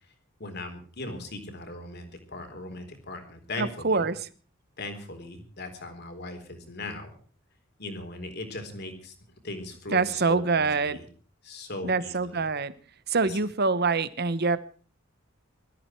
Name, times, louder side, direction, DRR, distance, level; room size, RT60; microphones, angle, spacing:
voice 1, 0.4-4.1 4.8-7.2 7.8-9.1 9.4-11.1 11.4-12.5 13.2-13.4, left 2 dB, 50° left, 6 dB, 3.9 m, -39 dB
voice 2, 3.6-4.2 9.9-11.0 11.8-12.7 13.1-14.6, right 4 dB, 50° right, 15 dB, 1.1 m, -25 dB
21.5 x 14.0 x 4.5 m, 0.40 s
head